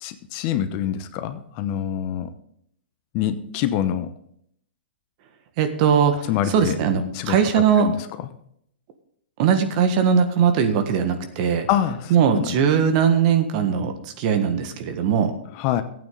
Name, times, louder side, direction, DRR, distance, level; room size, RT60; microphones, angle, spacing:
voice 1, 0.0-2.3 3.1-4.1 6.3-6.8 7.1-8.0 11.7-12.6 15.5-15.8, left 10 dB, 40° left, 10 dB, 0.9 m, -25 dB
voice 2, 5.6-6.1 6.5-7.9 9.4-11.7 12.1-15.3, right 7 dB, 45° right, 7 dB, 1.6 m, -20 dB
15.0 x 8.9 x 4.0 m, 0.70 s
hypercardioid pair, 120°, 6 cm